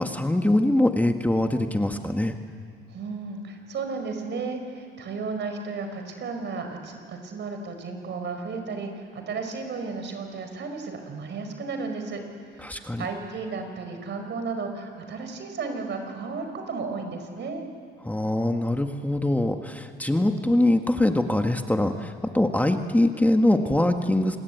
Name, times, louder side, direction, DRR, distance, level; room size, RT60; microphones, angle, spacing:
voice 1, 0.0-2.4 12.6-13.1 18.0-24.4, left 1 dB, 10° left, 5 dB, 1.5 m, -23 dB
voice 2, 2.9-12.2 12.5-17.6, right 4 dB, 65° right, 5 dB, 4.8 m, -34 dB
28.0 x 20.0 x 9.3 m, 2.1 s
cardioid pair, 90°, 20 cm